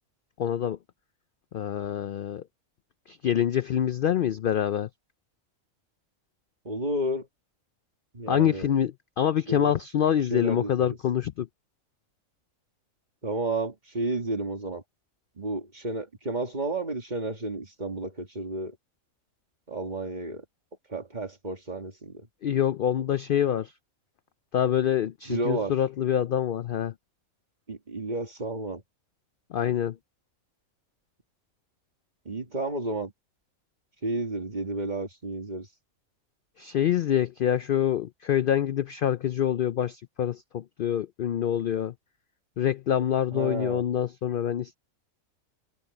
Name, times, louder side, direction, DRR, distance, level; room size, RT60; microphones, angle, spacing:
voice 1, 0.4-0.8 1.5-2.4 3.1-4.9 8.3-11.5 22.4-23.7 24.5-26.9 29.5-30.0 36.6-41.9 42.6-44.8, left 10 dB, 70° left, 0.5 m, -26 dB
voice 2, 6.6-7.3 8.1-8.7 9.5-9.8 10.3-11.0 13.2-14.8 15.4-18.8 19.7-20.4 20.9-22.3 25.3-25.7 27.7-28.8 32.3-33.1 34.0-35.7 43.3-43.8, right 2 dB, 30° right, 2.3 m, -31 dB
omnidirectional pair, 1.4 m